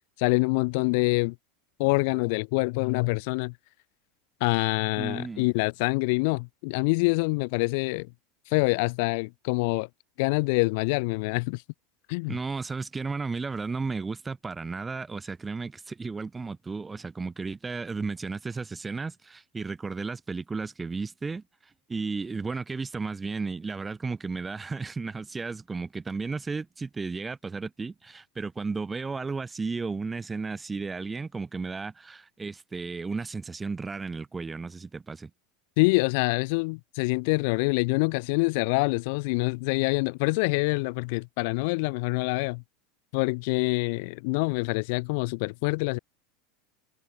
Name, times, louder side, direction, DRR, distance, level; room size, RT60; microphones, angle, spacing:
voice 1, 0.2-1.4 1.8-3.5 4.4-8.1 8.5-9.9 10.2-11.6 12.1-12.3 35.8-42.6 43.1-46.0, left 29 dB, 65° left, 1.8 m, -26 dB
voice 2, 5.0-5.5 12.3-35.3, right 4 dB, 15° right, 6.5 m, -34 dB
supercardioid pair, 125°, 0 cm